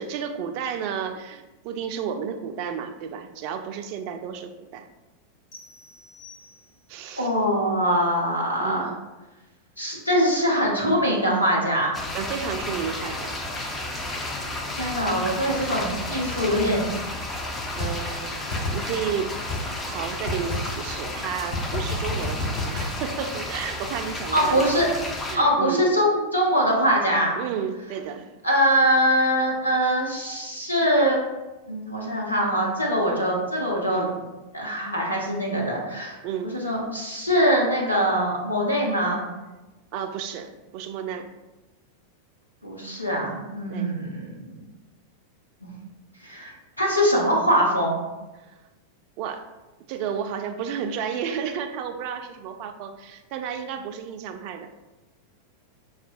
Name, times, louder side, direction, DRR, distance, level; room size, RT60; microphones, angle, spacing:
voice 1, 0.0-4.9 6.9-7.3 8.6-9.0 12.1-13.4 16.3-16.6 17.8-19.3 19.8-25.9 27.4-28.3 33.9-34.1 36.2-36.5 39.9-41.3 43.7-43.9 48.3-48.6 49.2-49.5 49.9-54.8, right 7 dB, 45° right, 6 dB, 0.3 m, -32 dB
sound 1, 5.5-7.0, left 3 dB, 40° left, 1.0 m, -49 dB
voice 2, 7.2-8.9 9.8-11.9 14.7-16.9 24.3-24.9 25.3-27.4 28.4-31.2 31.7-34.1 34.5-36.2 36.5-39.2 42.6-44.6 45.6-45.7 46.2-48.0, equal, 85° left, -3 dB, 0.8 m, -23 dB
sound 2, 11.9-25.4, left 1 dB, 15° left, 0.4 m, -32 dB
sound 3, 17.8-17.9 18.5-18.8 19.5-19.6 20.3-20.6 21.5-22.9, left 4 dB, 60° left, 1.2 m, -28 dB
5.5 x 2.1 x 2.5 m, 1.1 s
figure-of-eight pair, 90°, 0 cm